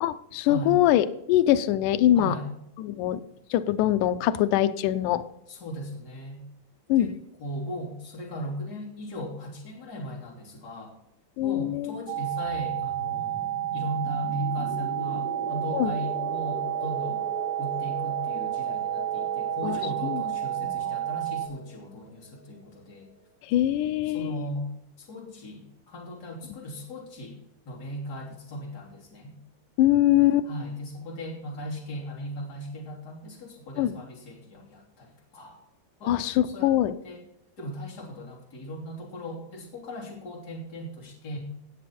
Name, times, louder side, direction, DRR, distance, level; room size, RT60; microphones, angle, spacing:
voice 1, 0.0-2.3 2.8-3.2 3.5-5.3 6.9-7.1 11.4-12.0 15.7-15.9 19.6-20.2 20.6-20.9 23.4-24.4 29.8-30.5 33.8-34.0 36.1-36.9, left 13 dB, 80° left, 9 dB, 1.8 m, -23 dB
voice 2, 2.1-2.5 5.5-6.4 7.0-7.1 7.4-10.9 11.4-17.3 17.6-23.1 24.1-24.7 25.0-27.4 27.6-29.4 30.4-35.6 36.0-36.7 37.0-37.2 37.6-41.4, equal, 25° left, -1 dB, 3.1 m, -37 dB
sound 1, 12.1-21.5, right 13 dB, 85° right, 2.5 m, -30 dB
sound 2, 12.4-22.9, equal, 45° left, 5.9 m, -40 dB
17.5 x 7.1 x 4.3 m, 0.80 s
omnidirectional pair, 4.4 m